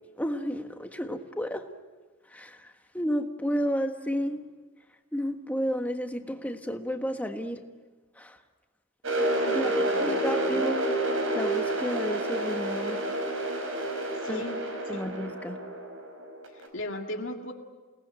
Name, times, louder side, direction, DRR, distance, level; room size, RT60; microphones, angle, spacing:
voice 1, 0.2-1.6 2.3-4.4 5.1-7.6 8.2-8.4 9.5-9.7 10.0-10.8 11.3-13.0 14.3-14.4 14.9-15.6, equal, 5° left, 5 dB, 1.5 m, -31 dB
sound 1, 9.0-16.7, right 1 dB, 75° right, 5.2 m, -29 dB
voice 2, 9.5-10.6 14.2-14.6 14.9-15.1 16.5-17.5, left 1 dB, 65° left, 2 dB, 2.1 m, -37 dB
29.5 x 19.0 x 9.0 m, 1.3 s
head